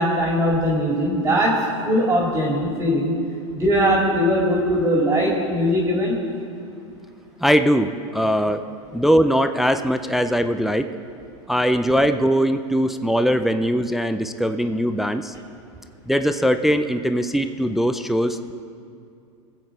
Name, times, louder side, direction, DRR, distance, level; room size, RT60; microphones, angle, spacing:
voice 1, 0.0-1.5 1.8-3.1 3.6-6.2, equal, 20° right, -3 dB, 2.3 m, -20 dB
voice 2, 7.4-8.6 8.9-10.9 11.5-15.3 16.1-18.5, equal, ahead, 9 dB, 0.4 m, -20 dB
19.0 x 8.0 x 4.7 m, 2.5 s
hypercardioid pair, 115°, 16 cm